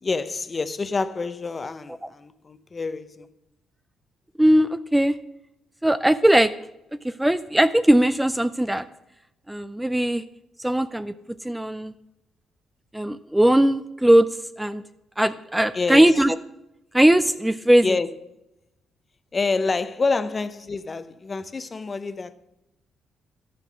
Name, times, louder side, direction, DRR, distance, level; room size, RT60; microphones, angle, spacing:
voice 1, 0.0-3.3 15.7-16.3 17.8-18.1 19.3-22.3, left 4 dB, 30° left, 0.7 m, -27 dB
voice 2, 4.4-5.2 5.8-6.5 7.0-8.8 9.5-10.2 10.6-11.1 11.4-11.9 12.9-14.3 14.6-14.8 15.2-16.4 16.9-17.9, right 1 dB, 5° right, 0.4 m, -19 dB
11.0 x 6.9 x 6.2 m
cardioid pair, 90°, 0 cm